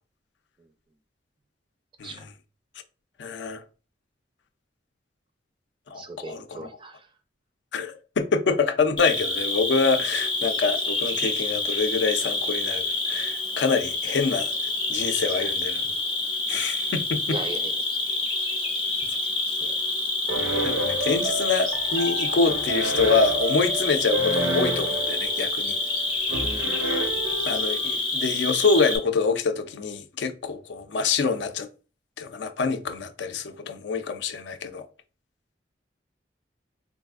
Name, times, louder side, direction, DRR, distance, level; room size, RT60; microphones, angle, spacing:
voice 1, 3.2-3.6 5.9-6.7 7.7-14.5 14.9-15.9 16.5-17.4 19.6-19.7 20.6-25.8 27.5-31.7 32.2-34.9, left 4 dB, 75° left, 0.4 m, -26 dB
voice 2, 5.9-7.1 15.4-15.5 17.3-17.7 26.4-26.9, right 3 dB, 25° right, 0.4 m, -38 dB
Cricket, 9.0-29.0, left 2 dB, 30° left, 0.7 m, -27 dB
sound 1, 20.3-28.0, right 1 dB, 90° right, 0.7 m, -30 dB
3.9 x 2.4 x 2.4 m
head